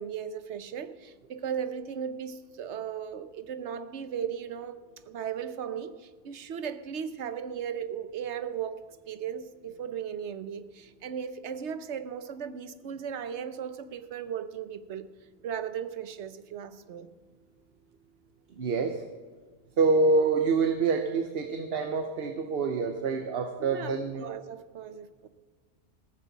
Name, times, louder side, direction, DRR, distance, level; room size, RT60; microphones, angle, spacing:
voice 1, 0.0-15.1 15.4-17.1 23.6-25.3, right 8 dB, 90° right, 1.1 m, -37 dB
voice 2, 18.6-19.0 19.8-24.3, right 4 dB, 65° right, 1.1 m, -26 dB
15.5 x 14.0 x 4.1 m
omnidirectional pair, 1.1 m